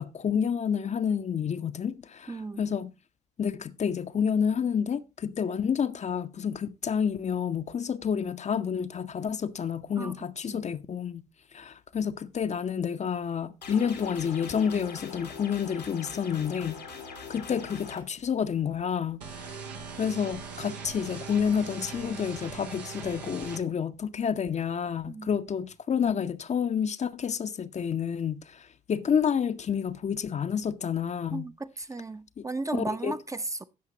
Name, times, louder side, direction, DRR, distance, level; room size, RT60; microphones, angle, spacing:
voice 1, 0.0-2.9 3.4-11.2 11.5-16.8 17.3-19.2 20.0-31.5 32.4-32.5 32.7-33.1, left 7 dB, 35° left, 0.6 m, -29 dB
voice 2, 2.3-2.6 10.0-10.1 10.5-10.6 25.1-25.3 31.3-33.7, right 2 dB, 15° right, 0.6 m, -35 dB
sound 1, 13.6-18.0, left 5 dB, 85° left, 1.5 m, -42 dB
sound 2, 19.2-23.6, right 5 dB, 80° right, 1.0 m, -40 dB
17.0 x 6.5 x 2.8 m
figure-of-eight pair, 40°, 21 cm